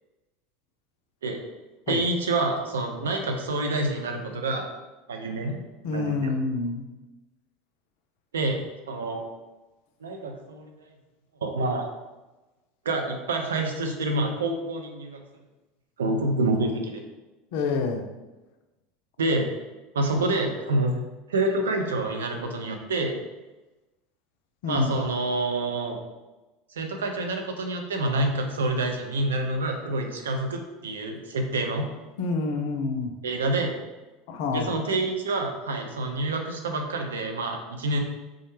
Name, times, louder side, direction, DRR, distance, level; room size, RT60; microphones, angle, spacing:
voice 1, 1.9-4.7 5.1-5.6 5.9-6.3 8.3-9.3 10.0-10.7 11.4-11.9 12.9-15.2 16.0-17.0 19.2-19.5 19.9-21.0 21.3-23.1 24.7-26.0 26.8-31.9 33.2-33.8 34.5-38.0, right 2 dB, 80° right, 3 dB, 0.4 m, -27 dB
voice 2, 5.8-6.8 17.5-18.0 24.6-24.9 32.2-33.1 34.3-34.8, left 4 dB, 60° left, 4 dB, 0.3 m, -27 dB
2.3 x 2.1 x 3.0 m, 1.1 s
figure-of-eight pair, 75°, 0 cm